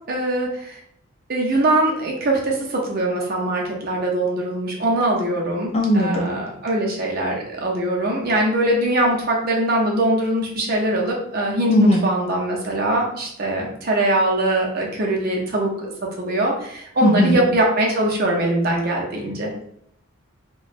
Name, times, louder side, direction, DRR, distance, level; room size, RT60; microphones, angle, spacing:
voice 1, 0.1-0.8 1.3-15.9 16.2-19.5, right 1 dB, 45° right, -1 dB, 0.6 m, -22 dB
voice 2, 5.7-6.2 11.7-12.0 17.0-17.4, equal, 30° left, 0 dB, 0.4 m, -17 dB
3.0 x 2.2 x 2.5 m, 0.72 s
head